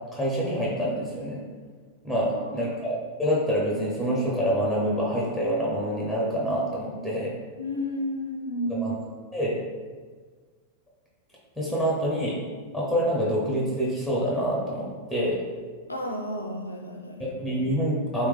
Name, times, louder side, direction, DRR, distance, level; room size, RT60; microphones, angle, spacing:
voice 1, 0.1-1.4 2.0-7.3 8.7-9.0 9.3-9.6 11.6-12.4 12.7-15.4 17.2-18.3, equal, ahead, -4 dB, 0.8 m, -26 dB
voice 2, 2.3-2.6 7.6-8.9 15.9-17.3, equal, 80° left, 2 dB, 0.4 m, -32 dB
3.2 x 3.2 x 3.5 m, 1.5 s
figure-of-eight pair, 90°, 0 cm